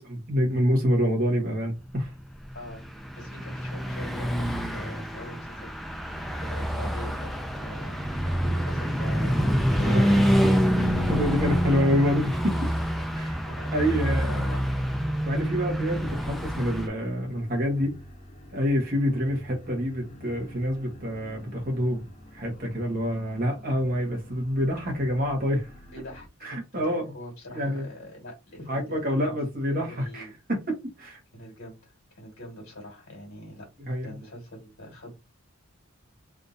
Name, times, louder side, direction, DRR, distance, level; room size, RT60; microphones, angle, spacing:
voice 1, 0.0-2.1 9.8-10.5 11.1-12.6 13.2-13.4 13.7-14.4 15.2-18.0 18.5-22.0 22.3-25.7 26.4-27.1 27.5-27.8 28.7-31.2 33.9-34.1, equal, 40° right, 1.1 m, -27 dB
voice 2, 2.5-2.9 3.1-6.1 6.4-7.3 7.6-8.0 8.3-10.1 10.9-11.2 11.7-11.9 12.8-12.9 13.4-14.6 25.8-29.3 29.9-30.3 31.3-33.7 34.0-35.1, left 1 dB, 65° left, 1.7 m, -43 dB
Car passing by / Truck, 2.5-16.9, equal, ahead, 0.4 m, -27 dB
sound 1, 7.1-26.3, equal, 30° left, 0.7 m, -48 dB
3.5 x 2.6 x 2.6 m
head